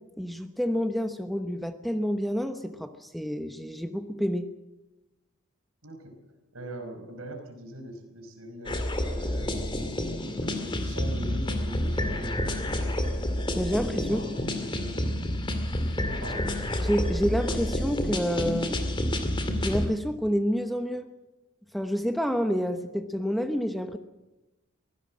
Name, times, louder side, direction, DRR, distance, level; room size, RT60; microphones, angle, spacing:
voice 1, 0.2-4.5 13.5-14.2 16.8-18.8 19.6-21.1 21.7-24.0, equal, ahead, 7 dB, 1.0 m, -28 dB
voice 2, 5.8-6.2 6.5-9.9 10.4-13.1 13.7-15.4 16.2-16.5, right 1 dB, 75° right, 5 dB, 5.0 m, -42 dB
sound 1, 8.6-19.9, left 1 dB, 20° left, 2.3 m, -29 dB
23.5 x 16.5 x 7.5 m, 1.0 s
head